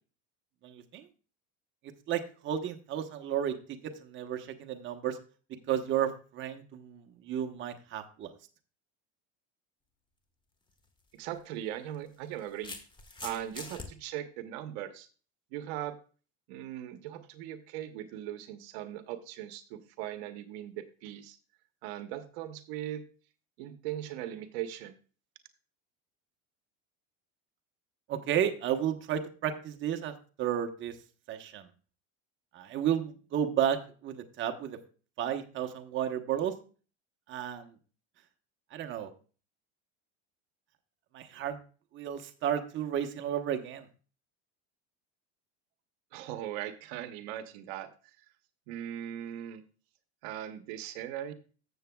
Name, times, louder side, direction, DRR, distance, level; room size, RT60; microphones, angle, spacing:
voice 1, 0.6-1.1 1.8-5.2 5.7-8.3 28.1-31.0 31.3-31.7 32.5-34.8 35.2-36.5 37.3-37.8 38.7-39.1 41.1-41.6 41.9-43.9, right 9 dB, 35° right, 6 dB, 1.0 m, -33 dB
sound 1, 10.7-10.9 11.9-13.9, left 3 dB, 15° left, 1.3 m, -43 dB
voice 2, 11.1-12.8 13.2-15.1 15.5-16.0 16.5-21.4 21.8-23.0 23.6-25.0 46.1-47.9 48.7-49.6 50.2-51.3, right 11 dB, 70° right, 9 dB, 1.0 m, -39 dB
15.0 x 6.9 x 2.3 m, 0.37 s
supercardioid pair, 140°, 32 cm